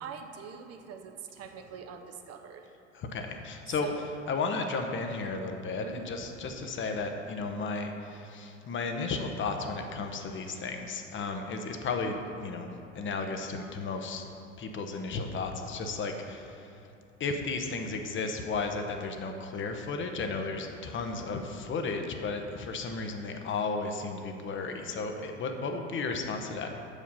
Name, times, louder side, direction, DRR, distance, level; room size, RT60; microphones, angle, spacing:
voice 1, 0.0-2.7 3.8-4.1 5.8-6.1, right 6 dB, 45° right, 5 dB, 0.7 m, -43 dB
voice 2, 2.9-3.9 4.3-12.7 12.9-14.2 14.6-16.8 17.2-26.7, left 4 dB, 35° left, 5 dB, 0.8 m, -34 dB
6.9 x 5.1 x 5.5 m, 2.7 s
figure-of-eight pair, 65°, 36 cm